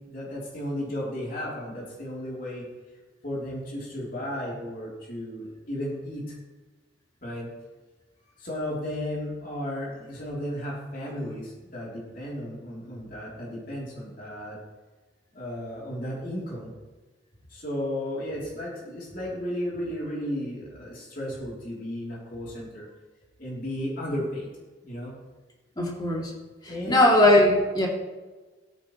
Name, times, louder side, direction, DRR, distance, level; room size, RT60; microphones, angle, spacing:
voice 1, 0.1-2.6 3.2-6.3 7.2-7.5 8.4-14.6 15.3-16.7 17.5-22.9 23.4-24.5 24.8-25.1 26.7-27.1, equal, 50° left, -5 dB, 3.2 m, -34 dB
voice 2, 25.8-26.3 26.6-27.9, left 1 dB, 20° left, -2 dB, 2.8 m, -20 dB
17.0 x 9.5 x 3.1 m, 1.3 s
head